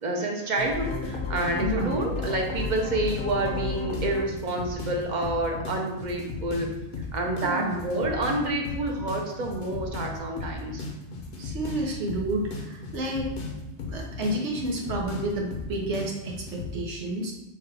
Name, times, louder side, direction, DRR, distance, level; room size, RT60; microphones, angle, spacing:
voice 1, 0.0-6.7 7.1-10.8, right 2 dB, 50° right, 1 dB, 0.7 m, -28 dB
sound 1, 0.6-16.7, left 4 dB, 55° left, 0.8 m, -34 dB
voice 2, 1.6-1.9 7.4-7.8 11.4-13.3 13.9-17.3, right 1 dB, 85° right, 0 dB, 1.1 m, -30 dB
6.4 x 2.3 x 3.3 m, 0.98 s
omnidirectional pair, 1.2 m